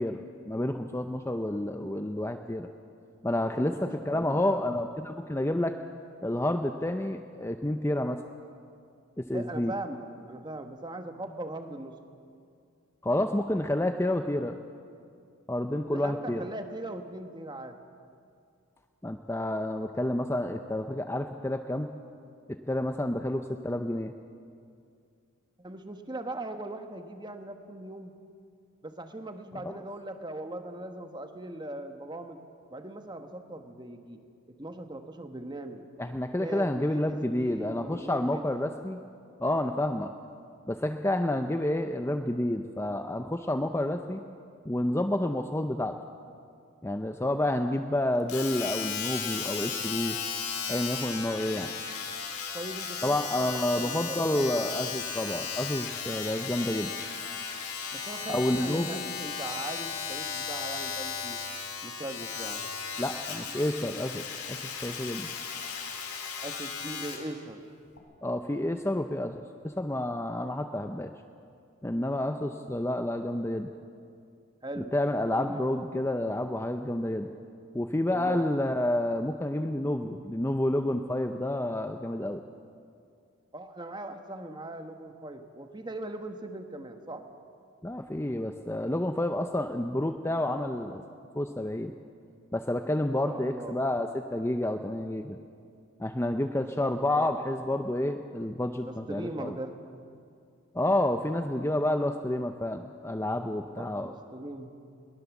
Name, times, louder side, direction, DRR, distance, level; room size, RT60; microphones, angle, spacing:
voice 1, 0.0-2.7 3.2-5.8 6.2-8.2 9.2-9.7 13.0-14.5 15.5-16.5 19.0-21.9 22.7-24.1 29.6-29.8 36.0-39.0 39.4-40.1 40.7-44.2 44.6-46.0 46.8-50.2 50.7-51.7 53.0-56.9 58.3-59.0 63.0-65.3 68.2-71.1 71.8-73.7 74.8-77.3 77.7-82.4 87.8-91.0 91.4-91.9 92.5-95.4 96.0-99.5 100.7-104.1, left 1 dB, 10° left, 6 dB, 0.5 m, -29 dB
voice 2, 3.7-4.6 9.3-12.0 15.9-17.8 25.6-28.1 28.8-32.4 32.7-34.2 34.5-35.8 36.4-38.4 52.5-55.0 57.9-61.4 61.8-62.7 66.4-67.6 74.6-74.9 75.3-75.7 78.1-78.4 83.5-87.3 93.2-93.8 96.5-97.3 98.8-99.8 103.7-104.8, right 1 dB, 20° right, 6 dB, 1.2 m, -40 dB
Domestic sounds home sounds, 48.3-67.3 68.0-68.1, left 6 dB, 85° left, 3.0 m, -36 dB
21.5 x 18.5 x 7.2 m, 2.3 s
head